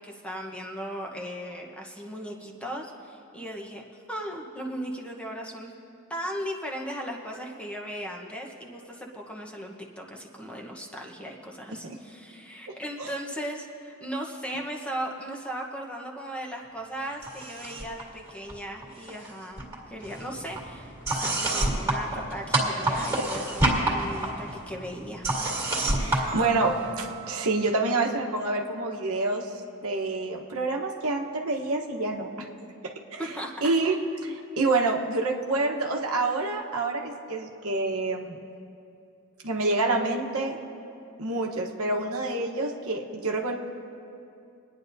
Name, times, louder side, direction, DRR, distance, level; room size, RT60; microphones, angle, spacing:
voice 1, 0.0-3.8 4.1-5.7 6.1-25.3 33.2-33.6, equal, 5° left, -1 dB, 1.0 m, -37 dB
sound 1, 17.2-18.0 18.3-19.3 19.6-27.1, right 1 dB, 15° right, 2.1 m, -29 dB
voice 2, 26.0-29.5 29.8-32.5 33.1-33.2 33.6-34.0 34.2-38.4 39.4-40.6 41.2-43.6, right 3 dB, 90° right, 1 dB, 1.1 m, -27 dB
sound 2, 26.3-28.6, right 10 dB, 40° right, 0.8 m, -43 dB
27.0 x 10.0 x 2.7 m, 2.6 s
head